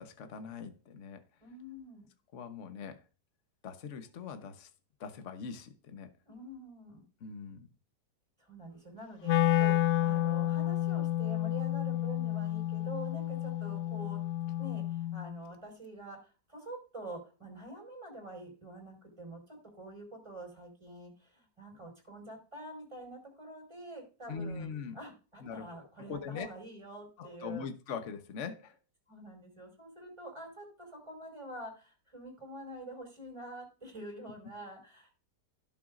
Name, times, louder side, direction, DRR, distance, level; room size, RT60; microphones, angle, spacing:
voice 1, 0.0-1.2 2.3-3.0 3.6-4.7 5.0-6.1 7.2-7.6 24.3-25.0 25.4-25.7 26.0-26.5 27.2-28.8, left 5 dB, 50° left, 1.3 m, -41 dB
voice 2, 1.4-2.1 6.3-7.0 8.4-14.2 14.6-27.7 29.1-35.2, right 1 dB, 15° right, 5.5 m, -47 dB
Wind instrument woodwind instrument, 9.2-15.3, left 13 dB, 65° left, 1.0 m, -30 dB
16.5 x 7.2 x 2.5 m
omnidirectional pair, 1.8 m